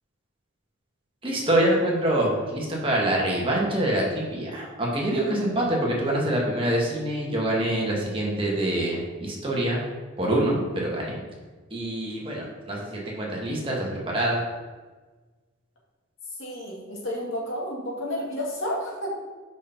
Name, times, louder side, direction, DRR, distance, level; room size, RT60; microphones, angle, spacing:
voice 1, 1.2-9.8 10.2-11.2 11.7-14.4, right 1 dB, 25° right, -3 dB, 1.4 m, -25 dB
voice 2, 16.4-19.1, equal, 80° left, -3 dB, 1.9 m, -31 dB
5.3 x 4.7 x 5.5 m, 1.3 s
head